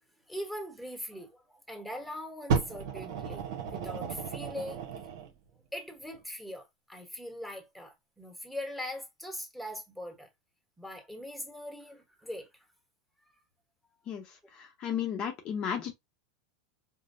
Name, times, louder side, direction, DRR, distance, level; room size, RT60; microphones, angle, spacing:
voice 1, 0.3-4.8 5.2-5.3 5.7-10.3 10.8-12.6, left 1 dB, ahead, 1.1 m, -41 dB
Fire, 2.5-5.3 6.1-6.2, right 6 dB, 75° right, 0.9 m, -33 dB
voice 2, 14.6-15.9, left 8 dB, 40° left, 0.7 m, -33 dB
4.9 x 2.2 x 2.6 m
supercardioid pair, 135°, 2 cm